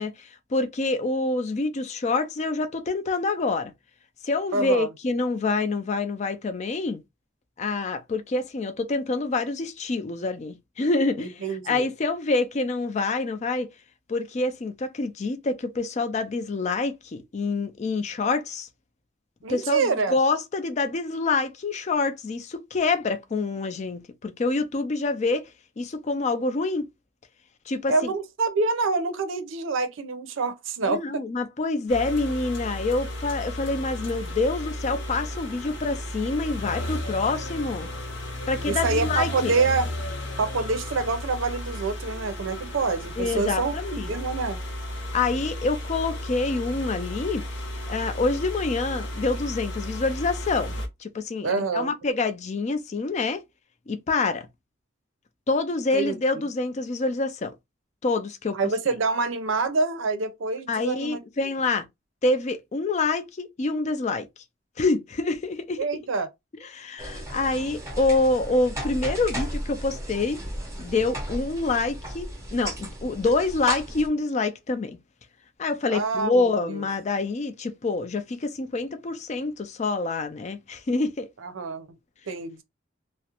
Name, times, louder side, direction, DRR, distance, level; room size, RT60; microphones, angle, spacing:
voice 1, 0.0-3.7 4.2-7.0 7.6-13.7 14.1-18.7 19.5-25.4 25.8-26.9 27.7-27.9 30.8-37.9 38.5-39.5 43.2-44.1 45.1-47.4 47.9-50.7 51.0-53.4 53.9-54.5 55.5-57.5 58.0-58.6 60.7-61.8 62.2-64.3 64.8-65.8 66.7-70.4 70.8-75.0 75.6-81.3, left 3 dB, 35° left, 0.4 m, -26 dB
voice 2, 4.5-4.9 11.2-11.9 19.4-20.2 27.9-31.2 38.7-39.9 40.4-44.6 51.4-51.9 55.9-56.2 58.5-61.2 65.8-66.3 75.9-76.8 81.4-81.9 82.3-82.6, right 4 dB, 85° right, 0.5 m, -26 dB
sound 1, 31.9-50.9, left 1 dB, 65° left, 0.7 m, -34 dB
sound 2, 67.0-74.1, right 1 dB, 15° right, 0.7 m, -34 dB
2.4 x 2.1 x 2.8 m
head